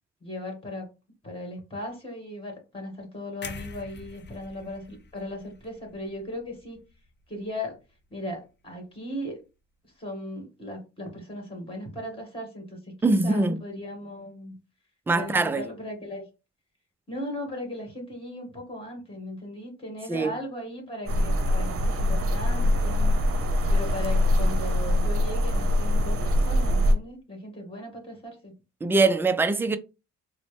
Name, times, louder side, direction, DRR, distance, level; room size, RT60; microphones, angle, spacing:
voice 1, 0.2-0.9 1.2-6.8 7.3-7.8 8.1-9.4 10.0-14.5 15.1-16.3 17.1-23.2 23.7-28.5, left 1 dB, 20° left, 1.9 m, -37 dB
sound 1, 3.4-7.4 7.8-8.0, left 4 dB, 35° left, 0.6 m, -45 dB
voice 2, 13.0-13.6 15.1-15.6 20.1-20.3 28.8-29.8, right 3 dB, 10° right, 0.3 m, -22 dB
sound 2, 21.1-26.9, left 1 dB, 50° right, 0.8 m, -23 dB
3.9 x 2.1 x 3.3 m
cardioid pair, 90°, 30 cm